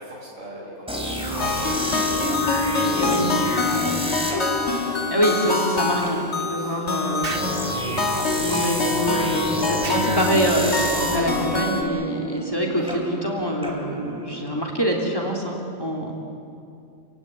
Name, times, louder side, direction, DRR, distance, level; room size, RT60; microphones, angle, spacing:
voice 1, 0.0-2.2 4.8-5.3 6.6-6.9, right 1 dB, 70° right, -4 dB, 8.2 m, -41 dB
sound 1, 0.9-14.6, equal, 5° right, 3.8 m, -29 dB
sound 2, 1.4-11.8, left 4 dB, 55° left, 2.3 m, -26 dB
voice 2, 2.9-4.0 4.8-7.4 8.4-16.1, equal, 15° left, -1 dB, 3.2 m, -25 dB
Explosion, 7.2-7.6 9.8-10.1, right 4 dB, 45° right, 1.4 m, -32 dB
29.5 x 16.0 x 9.8 m, 2.5 s
omnidirectional pair, 1.4 m